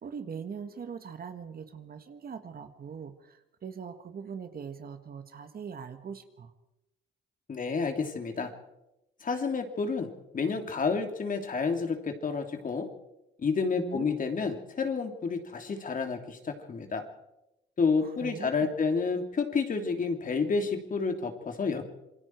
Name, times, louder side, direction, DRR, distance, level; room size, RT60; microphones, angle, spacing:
voice 1, 0.0-6.5 13.7-14.1 18.0-18.8, right 6 dB, 50° right, 9 dB, 1.7 m, -41 dB
voice 2, 7.5-8.5 9.2-12.9 13.4-17.0 17.8-21.8, left 4 dB, 40° left, 5 dB, 3.0 m, -30 dB
27.0 x 21.0 x 4.7 m, 0.91 s
cardioid pair, 90°, 20 cm